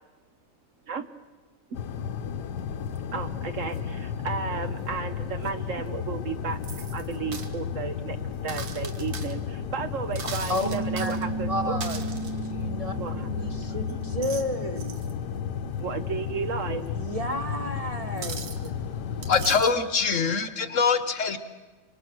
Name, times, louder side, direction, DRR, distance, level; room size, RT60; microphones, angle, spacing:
sound 1, 1.7-19.6, left 7 dB, 85° left, 1.5 m, -33 dB
sound 2, 2.9-3.0 3.7-3.8 5.4-5.5 6.6-7.5 8.5-9.3 10.1-11.3 11.8-12.5 13.9-14.5 14.8-15.1 16.9-17.0 18.2-18.7 19.2-19.8, right 5 dB, 75° right, 2.0 m, -39 dB
voice 1, 3.1-6.6 6.9-8.2 8.4-11.8 13.0-13.7 15.8-17.0, right 6 dB, 55° right, 9 dB, 1.2 m, -33 dB
Piano, 10.6-15.7, right 4 dB, 30° left, 1.0 m, -36 dB
voice 2, 11.5-12.0 12.5-12.9 13.4-15.0 17.0-18.8, equal, 25° right, 5 dB, 1.0 m, -31 dB
voice 3, 18.8-21.4, left 5 dB, 55° left, 11 dB, 1.2 m, -24 dB
25.5 x 24.5 x 6.2 m, 1.3 s
omnidirectional pair, 1.7 m